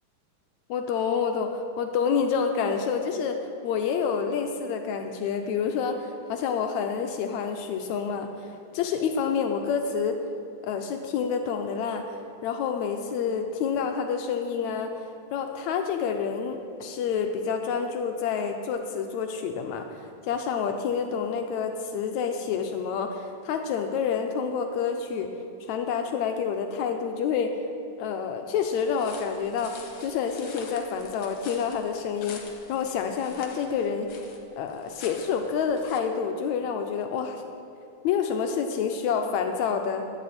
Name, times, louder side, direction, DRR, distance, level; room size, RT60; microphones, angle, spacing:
voice 1, 0.7-8.3 8.7-10.2 10.6-12.1 12.4-14.9 15.3-19.9 20.2-25.3 25.7-27.5 28.0-34.1 34.6-37.4 38.0-40.0, left 6 dB, 85° left, 5 dB, 1.6 m, -28 dB
sound 1, 28.6-36.0, left 5 dB, 60° left, 1.6 m, -46 dB
16.5 x 11.0 x 4.2 m, 2.8 s
omnidirectional pair, 4.1 m